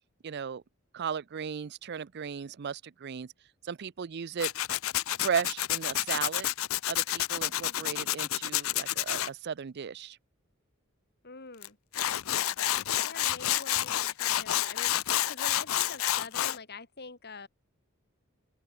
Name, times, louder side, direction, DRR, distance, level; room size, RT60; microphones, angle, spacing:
voice 1, 0.2-0.6 0.9-3.3 3.6-4.5 5.2-6.5 6.9-10.2, right 7 dB, 55° right, 0.5 m, -35 dB
Tools, 4.4-9.3 11.6-11.7 11.9-16.6, left 13 dB, 80° left, 0.6 m, -29 dB
voice 2, 7.6-8.1 11.2-11.8 13.0-15.0 15.3-17.5, left 4 dB, 50° left, 4.6 m, -45 dB
open air
head